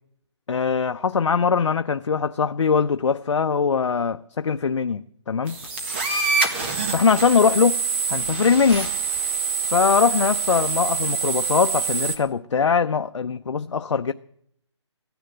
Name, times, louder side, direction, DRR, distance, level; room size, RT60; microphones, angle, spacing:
voice 1, 0.5-5.6 6.9-7.8 8.1-8.9 9.7-14.1, left 6 dB, 80° left, 0.6 m, -21 dB
sound 1, 5.5-12.2, right 5 dB, 25° right, 1.8 m, -25 dB
16.5 x 10.0 x 7.7 m
hypercardioid pair, 170°, 15 cm